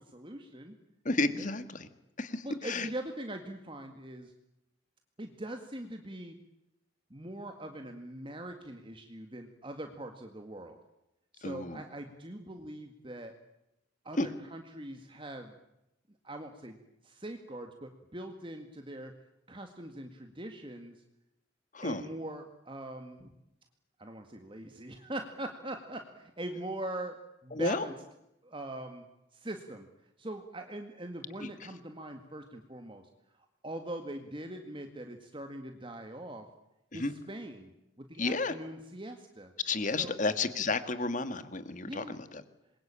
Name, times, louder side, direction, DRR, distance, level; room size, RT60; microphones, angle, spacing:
voice 1, 0.1-0.8 1.4-1.5 2.4-4.3 5.2-6.4 7.1-10.8 11.3-13.3 14.0-15.5 16.2-16.8 17.0-19.1 19.5-21.0 21.8-23.3 24.0-27.2 27.4-27.9 28.4-29.0 29.3-29.9 30.2-33.1 33.6-36.5 36.9-37.7 38.0-39.5 40.0-40.2 41.9-42.2, right 1 dB, 25° right, 5 dB, 2.0 m, -42 dB
voice 2, 1.1-1.9 2.2-2.9 11.4-11.8 14.2-14.3 21.7-22.1 27.5-27.9 31.4-31.5 36.9-37.1 38.2-38.5 39.6-42.4, left 3 dB, 40° left, 11 dB, 1.9 m, -32 dB
27.5 x 22.5 x 8.9 m, 0.87 s
head